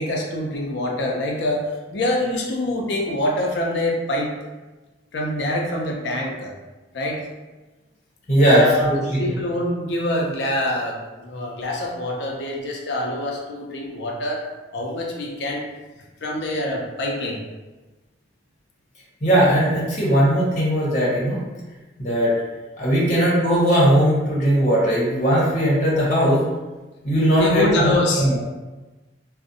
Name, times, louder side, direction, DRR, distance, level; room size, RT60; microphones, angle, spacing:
voice 1, 0.0-1.6 1.9-4.3 5.1-6.5 6.9-7.2 8.4-15.7 16.2-17.4 27.3-28.2, left 1 dB, 75° left, -1 dB, 0.4 m, -25 dB
voice 2, 8.3-9.0 9.3-9.4 19.2-21.4 22.0-22.3 22.8-26.4 27.0-27.9 28.2-28.4, equal, 45° left, -7 dB, 0.9 m, -18 dB
2.5 x 2.0 x 2.6 m, 1.2 s
head